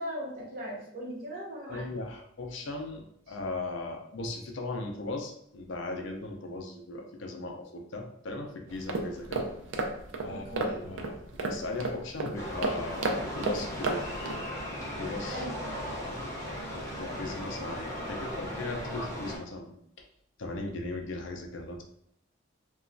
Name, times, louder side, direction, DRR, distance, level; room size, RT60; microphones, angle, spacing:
voice 1, 0.0-1.8 10.3-10.8 15.2-15.5, equal, 45° right, -3 dB, 0.8 m, -38 dB
voice 2, 1.7-9.5 10.2-14.1 14.8-16.2 17.0-20.0 20.4-21.8, left 2 dB, 65° left, 3 dB, 0.4 m, -38 dB
sound 1, 8.7-14.4, right 3 dB, 70° right, 0.4 m, -33 dB
sound 2, 12.3-19.4, equal, 15° left, 0.6 m, -37 dB
2.9 x 2.2 x 2.5 m, 0.73 s
head